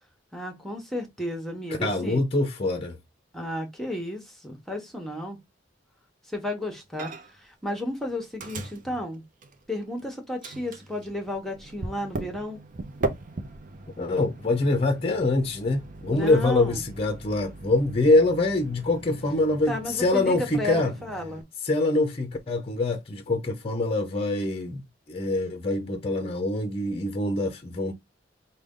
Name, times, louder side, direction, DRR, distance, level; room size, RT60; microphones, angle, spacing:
voice 1, 0.3-2.2 3.3-5.4 6.3-9.2 9.7-12.6 16.1-16.8 19.7-21.4, left 1 dB, ahead, 0.9 m, -33 dB
voice 2, 1.8-3.0 14.0-20.9 21.6-24.8 25.1-27.9, left 2 dB, 30° left, 0.6 m, -24 dB
Microwave oven, 7.0-7.5 7.7-10.0 10.4-21.4, right 2 dB, 45° right, 0.6 m, -39 dB
4.9 x 2.2 x 3.6 m
head